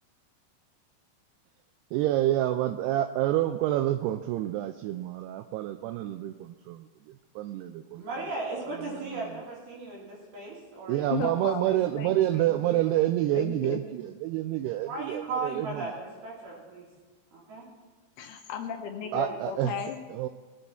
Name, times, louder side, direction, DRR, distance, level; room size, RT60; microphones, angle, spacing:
voice 1, 1.9-6.9 7.4-8.0 10.9-15.9 19.1-19.7 20.1-20.3, right 14 dB, 85° right, 8 dB, 2.4 m, -28 dB
voice 2, 8.0-11.8 12.1-12.2 12.7-12.9 14.9-16.9 17.3-17.7 19.0-19.4, right 3 dB, 60° right, -5 dB, 5.3 m, -37 dB
voice 3, 11.1-11.6 12.0-12.6 13.3-13.8 18.2-20.3, left 8 dB, 75° left, 4 dB, 2.5 m, -35 dB
21.0 x 9.1 x 4.5 m, 1.3 s
omnidirectional pair, 5.0 m